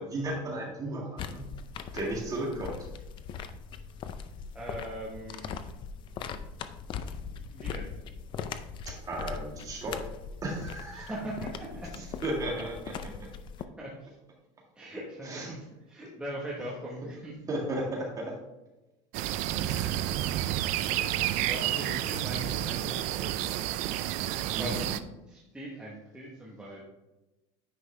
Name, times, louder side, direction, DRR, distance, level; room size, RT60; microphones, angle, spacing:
voice 1, 0.0-1.5 1.9-2.8 8.9-10.1 10.4-11.1 12.2-13.3 15.3-15.5 17.5-18.3 19.6-20.2 24.5-24.8, right 1 dB, 20° right, 0 dB, 1.8 m, -34 dB
sound 1, 1.2-13.6, left 6 dB, 30° left, 0.5 m, -40 dB
voice 2, 4.5-5.6 7.0-7.2 7.5-7.9 10.9-11.9 13.8-14.1 14.7-17.4 20.9-21.1 21.4-23.5 24.2-26.8, right 1 dB, 5° right, -5 dB, 1.1 m, -41 dB
sound 2, 19.1-25.0, right 13 dB, 50° right, 0.4 m, -30 dB
9.7 x 5.3 x 3.3 m, 1.0 s
cardioid pair, 155°, 16 cm